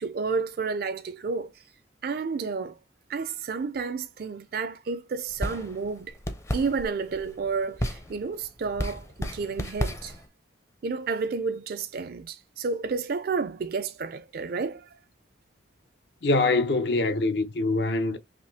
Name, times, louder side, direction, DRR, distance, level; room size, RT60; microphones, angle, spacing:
voice 1, 0.0-1.6 2.0-2.8 3.1-6.2 6.5-10.2 10.8-14.9, right 4 dB, 50° right, 0.4 m, -31 dB
sound 1, 5.3-10.3, equal, 15° left, 0.5 m, -34 dB
voice 2, 16.2-18.2, left 2 dB, 60° left, 0.6 m, -24 dB
4.9 x 3.0 x 2.6 m
head